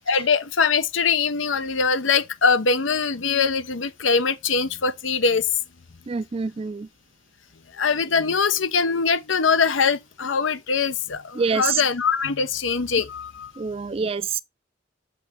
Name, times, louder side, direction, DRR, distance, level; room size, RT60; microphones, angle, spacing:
voice 1, 0.1-5.5 7.7-13.5, left 5 dB, 75° left, 0.8 m, -22 dB
voice 2, 6.1-6.9 11.4-11.8 13.6-14.4, right 5 dB, 30° right, 0.4 m, -26 dB
7.3 x 5.3 x 3.6 m
head